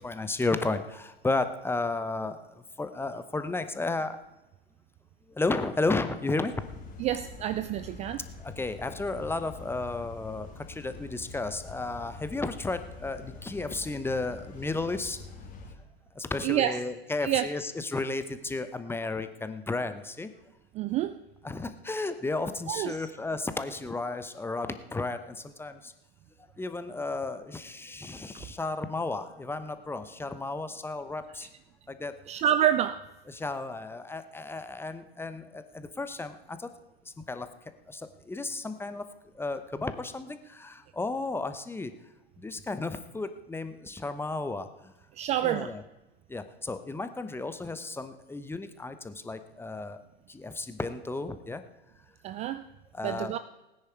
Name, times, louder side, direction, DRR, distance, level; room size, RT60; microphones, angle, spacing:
voice 1, 0.0-4.2 5.3-6.5 8.4-15.2 16.1-20.3 21.4-25.9 26.6-31.5 31.9-32.2 33.3-36.7 37.0-37.5 37.9-39.1 39.3-41.9 42.4-44.9 45.4-45.8 46.3-50.0 50.3-51.6 52.9-53.3, left 3 dB, 5° left, 10 dB, 0.8 m, -33 dB
sound 1, 6.5-15.7, left 3 dB, 25° left, 2.4 m, -45 dB
voice 2, 7.0-8.2 16.4-16.8 17.2-17.5 20.7-21.2 22.7-23.1 32.3-33.0 45.1-45.8 52.2-52.7 53.0-53.4, right 11 dB, 20° right, 13 dB, 0.3 m, -28 dB
18.0 x 9.8 x 4.6 m, 1.0 s
hypercardioid pair, 95°, 32 cm